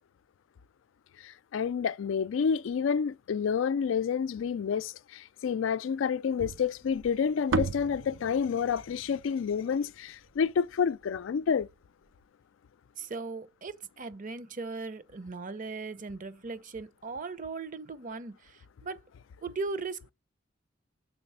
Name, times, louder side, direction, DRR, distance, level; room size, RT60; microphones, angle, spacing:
voice 1, 1.2-11.7, left 6 dB, 75° left, 0.4 m, -29 dB
sound 1, 6.4-10.7, right 3 dB, 80° right, 0.6 m, -36 dB
voice 2, 13.0-19.0 19.4-20.1, right 4 dB, 45° right, 0.7 m, -38 dB
5.9 x 4.0 x 5.5 m
head